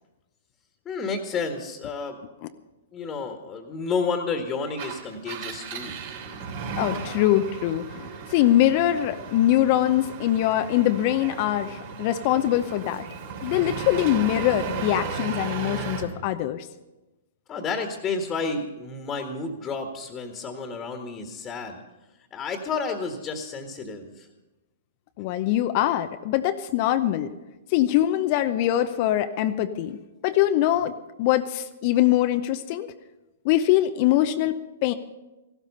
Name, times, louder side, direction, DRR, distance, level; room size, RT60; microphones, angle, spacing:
voice 1, 0.8-2.2 2.9-5.9 17.5-21.8 22.3-24.3, left 4 dB, 20° left, 4 dB, 1.7 m, -31 dB
Engine, 4.7-16.1, right 5 dB, 55° right, 2.8 m, -35 dB
voice 2, 6.8-13.0 13.4-16.7 25.2-27.3 27.7-30.0 30.2-32.9 33.4-34.9, left 13 dB, 45° left, 9 dB, 0.7 m, -23 dB
15.5 x 12.5 x 5.5 m, 1.0 s
hypercardioid pair, 120°, 0 cm